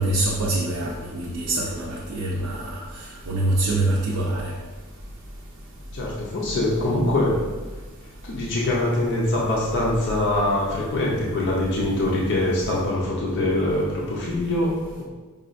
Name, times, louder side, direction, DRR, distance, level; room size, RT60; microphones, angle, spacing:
voice 1, 0.0-2.8 3.3-4.5, right 2 dB, 65° right, -3 dB, 0.5 m, -24 dB
voice 2, 5.9-7.4 8.2-15.0, left 1 dB, 55° left, -4 dB, 0.6 m, -23 dB
5.0 x 2.3 x 2.4 m, 1.3 s
head